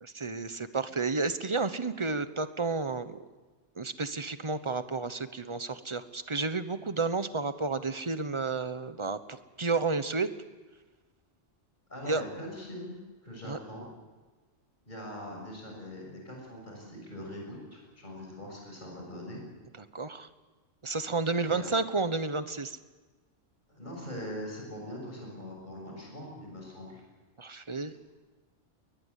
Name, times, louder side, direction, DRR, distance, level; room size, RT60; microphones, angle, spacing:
voice 1, 0.0-3.2 3.8-10.3 12.0-12.2 13.4-13.6 19.8-20.3 20.8-22.8 27.4-27.9, right 3 dB, 25° right, 12 dB, 1.0 m, -31 dB
voice 2, 11.9-13.0 13.2-13.8 14.9-19.4 21.2-21.7 23.7-27.0 27.9-28.0, equal, 40° left, 0 dB, 7.0 m, -42 dB
21.0 x 21.0 x 8.4 m, 1.3 s
omnidirectional pair, 1.3 m